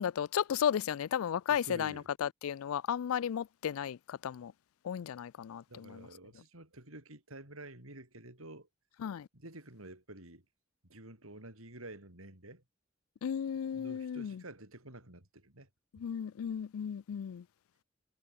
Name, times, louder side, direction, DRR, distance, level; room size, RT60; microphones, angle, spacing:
voice 1, 0.0-4.5 4.8-6.1 9.0-9.3 13.2-14.4 15.9-17.4, left 8 dB, 90° left, 0.4 m, -34 dB
voice 2, 1.5-2.1 5.7-8.7 9.3-10.4 10.8-12.6 13.7-15.7, right 1 dB, 90° right, 7.9 m, -50 dB
head